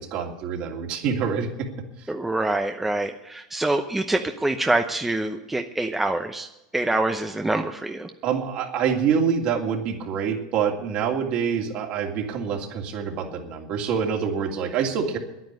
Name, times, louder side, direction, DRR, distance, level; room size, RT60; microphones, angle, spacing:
voice 1, 0.0-1.7 8.2-15.2, right 7 dB, 50° right, 1 dB, 2.8 m, -26 dB
voice 2, 2.1-6.5 6.7-8.1, right 2 dB, 10° right, 5 dB, 0.8 m, -25 dB
10.5 x 9.5 x 9.4 m, 0.94 s
hypercardioid pair, 100°, 3 cm